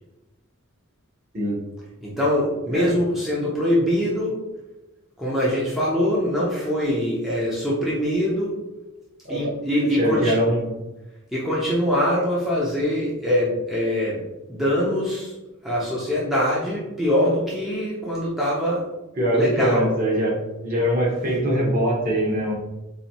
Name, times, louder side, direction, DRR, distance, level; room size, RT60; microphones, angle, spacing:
voice 1, 2.0-4.4 5.2-8.6 9.3-10.4 11.3-14.2 14.5-15.3 15.6-18.9 19.3-19.9, equal, ahead, -7 dB, 0.5 m, -23 dB
voice 2, 10.0-10.7 19.2-20.4 20.6-22.5, right 1 dB, 40° right, -4 dB, 0.9 m, -22 dB
4.0 x 2.6 x 2.8 m, 1.0 s
head